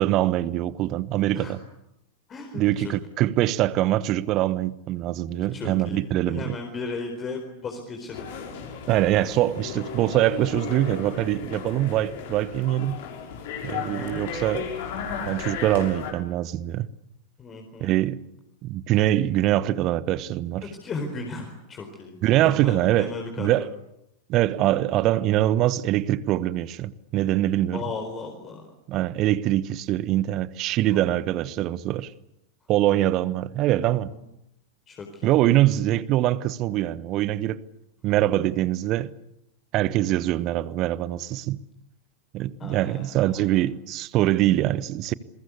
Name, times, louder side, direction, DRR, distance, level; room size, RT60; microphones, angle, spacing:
voice 1, 0.0-1.6 2.5-6.6 8.9-13.0 13.6-14.7 15.3-16.9 17.8-18.2 18.6-20.6 22.2-23.1 23.4-23.7 24.3-27.8 28.9-32.1 32.7-34.1 35.2-37.6 38.0-39.1 39.7-41.6 42.3-45.1, right 14 dB, 35° right, 1.1 m, -23 dB
voice 2, 2.3-2.9 5.3-8.2 13.8-14.2 17.4-17.9 20.6-23.7 27.7-28.7 30.9-31.0 33.8-34.2 34.9-35.3 42.6-43.6, left 4 dB, 25° left, 4.4 m, -36 dB
sound 1, 8.1-16.1, left 6 dB, 55° left, 6.3 m, -35 dB
28.5 x 22.5 x 8.4 m
figure-of-eight pair, 90°, 0 cm